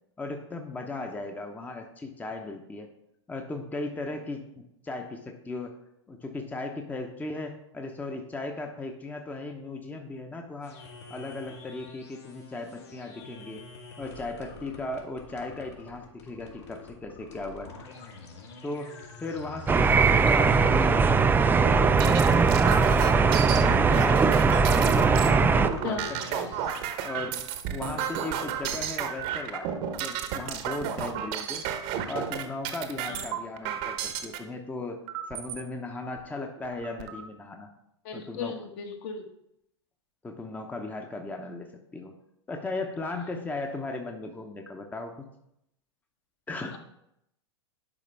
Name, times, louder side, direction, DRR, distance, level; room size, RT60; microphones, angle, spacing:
voice 1, 0.2-2.9 3.3-5.8 6.1-10.8 11.1-13.6 14.0-17.7 18.6-24.4 24.7-26.5 27.0-31.6 32.1-35.0 35.3-37.7 38.1-38.6 40.2-42.1 42.5-45.1 46.5-46.8, left 2 dB, 10° left, 4 dB, 0.8 m, -37 dB
sound 1, 10.6-21.4 24.4-26.8, left 4 dB, 70° left, 2.3 m, -46 dB
sound 2, 19.7-25.7, right 4 dB, 15° right, 0.5 m, -20 dB
sound 3, 21.5-34.4 35.1-35.6 36.2-36.3 36.6-37.2, right 9 dB, 45° right, 1.0 m, -32 dB
voice 2, 38.0-39.3 46.7-46.8, left 5 dB, 50° left, 3 dB, 1.4 m, -35 dB
11.0 x 5.0 x 3.4 m, 0.79 s
figure-of-eight pair, 100°, 15 cm